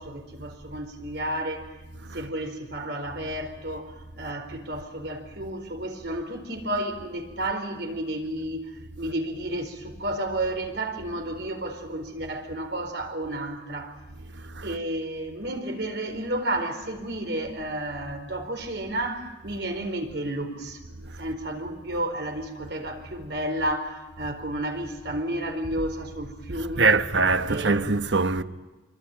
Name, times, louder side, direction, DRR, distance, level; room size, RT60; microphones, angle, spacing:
voice 1, 0.0-1.7 2.1-13.9 14.6-20.8 21.2-27.0 27.5-27.9, right 1 dB, 65° right, 4.5 m, -32 dB
voice 2, 26.5-28.4, right 4 dB, 85° right, 1.2 m, -23 dB
26.0 x 23.5 x 9.2 m
head